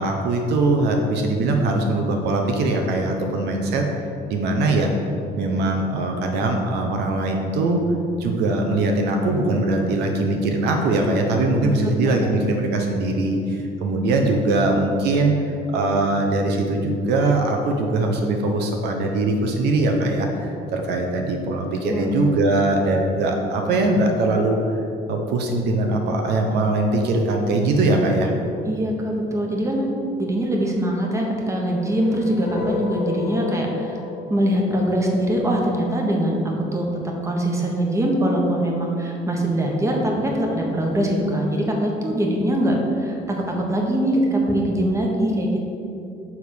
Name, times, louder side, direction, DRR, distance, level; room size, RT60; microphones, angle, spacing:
voice 1, 0.0-3.9 4.3-4.9 5.3-7.8 8.2-15.3 15.7-24.8 25.1-28.3, right 2 dB, 80° right, 2 dB, 0.8 m, -21 dB
voice 2, 11.6-12.3 21.8-22.1 28.6-34.0 34.3-36.4 36.7-36.9 37.2-45.6, right 1 dB, 15° right, -1 dB, 1.2 m, -22 dB
sound 1, 31.6-35.7, left 5 dB, 75° left, 1.1 m, -32 dB
7.0 x 3.6 x 6.3 m, 2.6 s
cardioid pair, 110°, 17 cm